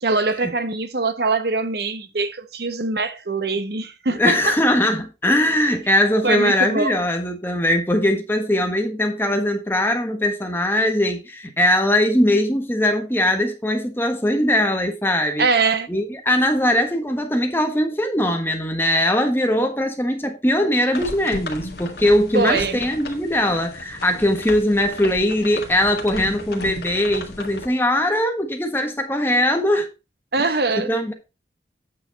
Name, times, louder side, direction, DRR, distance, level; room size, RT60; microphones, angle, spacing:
voice 1, 0.0-4.5 6.2-6.9 15.4-15.9 22.3-22.8 30.3-30.9, right 3 dB, 60° right, 0.9 m, -22 dB
voice 2, 4.2-15.5 15.9-29.9 30.4-31.1, left 1 dB, 10° left, 1.4 m, -20 dB
sound 1, 20.9-27.7, left 2 dB, 60° left, 1.8 m, -35 dB
8.9 x 6.4 x 4.0 m
head